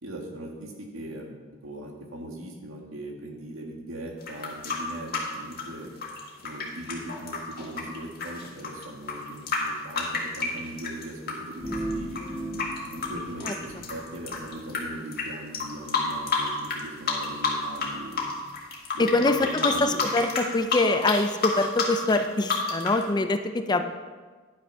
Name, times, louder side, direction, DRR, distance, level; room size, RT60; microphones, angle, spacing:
voice 1, 0.0-5.9 6.4-12.2 12.9-18.3 18.9-20.0, right 1 dB, 85° right, 1 dB, 1.8 m, -39 dB
sound 1, 4.2-11.3 11.7-14.8 15.1-15.2 15.5-16.8 17.1-17.9 18.1-23.0, left 5 dB, 50° left, 1.9 m, -29 dB
sound 2, 11.6-14.4, right 1 dB, 5° right, 2.9 m, -36 dB
voice 2, 19.0-23.9, left 2 dB, 20° left, 8 dB, 0.5 m, -24 dB
10.5 x 6.1 x 5.5 m, 1.4 s
head